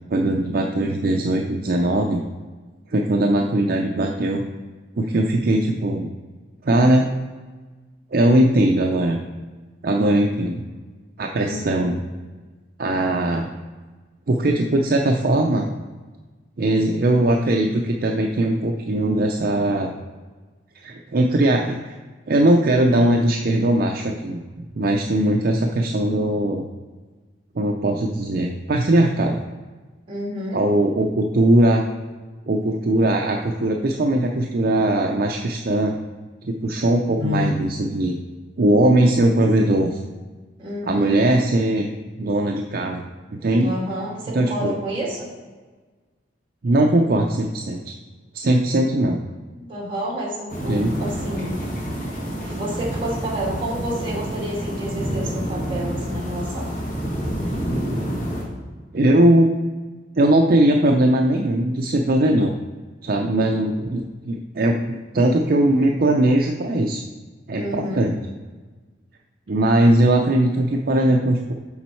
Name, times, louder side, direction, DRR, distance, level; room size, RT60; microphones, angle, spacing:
voice 1, 0.1-2.2 2.9-4.4 5.0-6.1 6.6-7.1 8.1-9.2 9.8-10.6 11.2-12.0 12.8-13.5 14.3-15.7 16.6-20.0 20.7-21.9 22.3-24.4 24.8-26.7 27.6-29.4 30.5-31.8 32.5-35.9 36.4-38.2 38.6-40.0 40.8-41.9 42.2-43.0 43.3-43.7 44.3-44.7 46.6-47.9 48.3-49.2 50.7-50.9 58.9-59.5 60.2-62.5 63.0-67.0 67.5-68.2 69.5-71.5, right 1 dB, 50° right, 2 dB, 0.5 m, -19 dB
voice 2, 11.3-11.6 30.1-30.6 37.1-37.5 40.6-41.3 43.5-45.3 49.6-51.6 52.4-56.7 67.6-68.0, equal, 30° right, -4 dB, 2.3 m, -29 dB
sound 1, 50.5-58.4, equal, 45° left, 1.7 m, -28 dB
7.2 x 6.2 x 4.5 m, 1.4 s
head